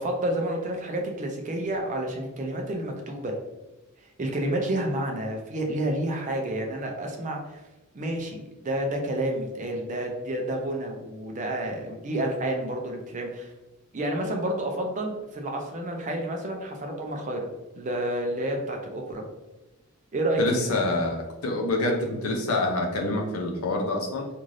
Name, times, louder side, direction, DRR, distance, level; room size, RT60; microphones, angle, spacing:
voice 1, 0.0-3.3 4.2-7.6 7.9-13.5 13.9-17.5 17.8-19.2 20.1-20.7, right 1 dB, 35° right, 2 dB, 0.5 m, -29 dB
voice 2, 20.4-24.3, left 2 dB, 80° left, 2 dB, 0.6 m, -26 dB
2.6 x 2.5 x 3.1 m, 1.1 s
head